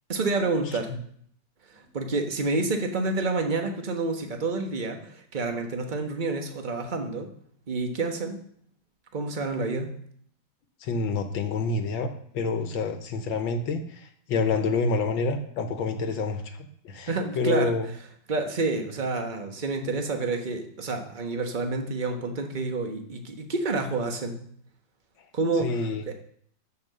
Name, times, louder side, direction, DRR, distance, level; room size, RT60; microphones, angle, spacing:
voice 1, 0.1-1.0 1.7-7.3 7.7-8.4 9.1-9.9 17.1-17.8 18.3-24.4 25.3-25.8 26.1-26.2, right 3 dB, 30° right, 4 dB, 1.1 m, -28 dB
voice 2, 10.8-12.1 12.3-17.9 25.6-26.0, left 4 dB, 70° left, 7 dB, 1.7 m, -28 dB
12.5 x 5.4 x 6.7 m, 0.64 s
omnidirectional pair, 2.3 m